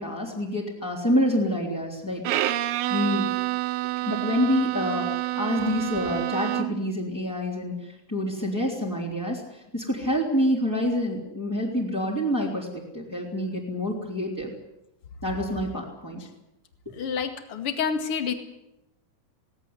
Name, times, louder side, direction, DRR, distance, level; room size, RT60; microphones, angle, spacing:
voice 1, 0.0-2.2 2.9-3.3 4.1-5.1 5.3-12.7 12.9-14.5 15.2-16.2, equal, 5° left, -5 dB, 2.4 m, -27 dB
Bowed string instrument, 2.2-6.9, right 16 dB, 85° right, 3.6 m, -28 dB
voice 2, 16.9-18.3, left 6 dB, 55° left, 7 dB, 1.5 m, -28 dB
20.5 x 18.0 x 9.8 m, 0.89 s
omnidirectional pair, 5.9 m